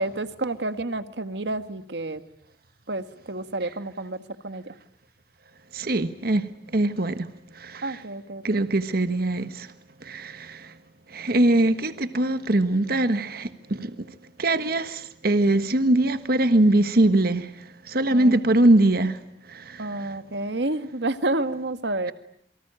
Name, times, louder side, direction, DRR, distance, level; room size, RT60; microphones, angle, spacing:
voice 1, 0.0-2.2 2.9-4.7 7.8-8.7 18.1-18.5 19.8-22.1, right 2 dB, 75° right, 1.6 m, -30 dB
voice 2, 5.7-6.5 6.7-7.3 7.5-8.0 8.4-9.7 10.0-10.7 11.1-13.9 14.4-17.5 17.9-19.2 19.5-20.1, right 1 dB, 60° right, 1.4 m, -22 dB
28.0 x 24.0 x 8.8 m
head